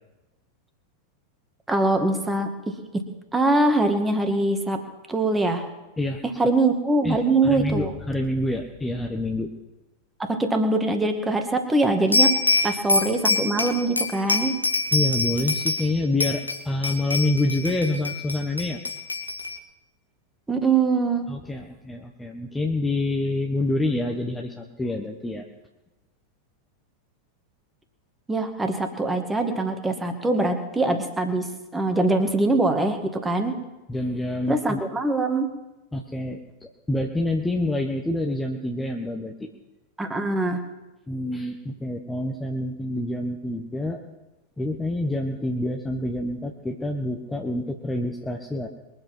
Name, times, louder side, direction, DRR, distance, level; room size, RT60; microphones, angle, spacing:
voice 1, 1.7-3.0 3.3-4.8 5.1-5.6 6.4-7.9 10.2-12.4 12.6-14.6 20.5-21.3 28.3-33.6 34.5-35.5 40.0-40.6, right 2 dB, 10° right, 5 dB, 2.1 m, -23 dB
voice 2, 7.0-9.5 12.6-12.8 14.9-18.8 21.3-25.5 33.9-34.8 35.9-39.5 41.1-44.0 44.6-48.7, left 1 dB, 10° left, 2 dB, 1.2 m, -27 dB
sound 1, 12.1-15.9 16.2-19.6, left 2 dB, 85° left, 1.1 m, -25 dB
22.5 x 7.9 x 6.1 m, 1.0 s
figure-of-eight pair, 90°, 0 cm